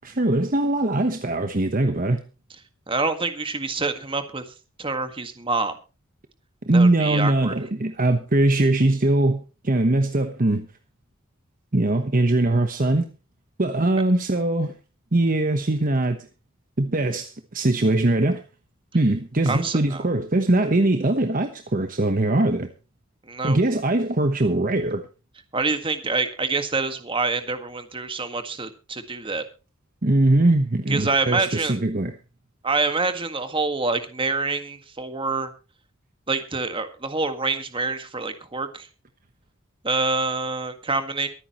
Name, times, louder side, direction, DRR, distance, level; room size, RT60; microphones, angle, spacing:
voice 1, 0.0-2.2 6.7-10.7 11.7-13.1 13.6-14.7 15.1-16.2 16.8-18.4 18.9-22.7 23.4-25.0 30.0-32.1, right 2 dB, 40° right, 1.1 m, -21 dB
voice 2, 2.9-4.4 4.8-5.7 6.7-7.6 19.5-20.0 23.2-23.6 25.5-29.4 30.9-31.8 32.6-35.5 36.3-38.9 39.8-41.3, right 3 dB, 25° right, 1.8 m, -26 dB
23.5 x 9.5 x 3.1 m
head